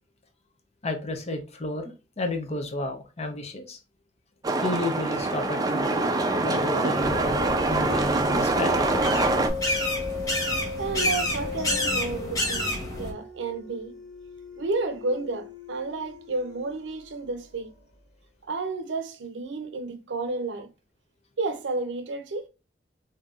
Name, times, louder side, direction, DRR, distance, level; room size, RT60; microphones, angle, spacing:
voice 1, 0.8-3.8 4.6-6.1 6.4-9.0, left 2 dB, 35° left, 0.7 m, -32 dB
sound 1, 4.4-9.5, right 3 dB, 20° right, 0.4 m, -25 dB
sound 2, 5.0-17.8, left 5 dB, 85° left, 1.5 m, -37 dB
sound 3, 7.0-13.1, left 1 dB, 20° left, 1.2 m, -30 dB
voice 2, 10.8-14.0 14.6-17.7 18.4-20.7 21.4-22.5, right 3 dB, 85° right, 0.5 m, -31 dB
3.7 x 2.7 x 2.4 m
head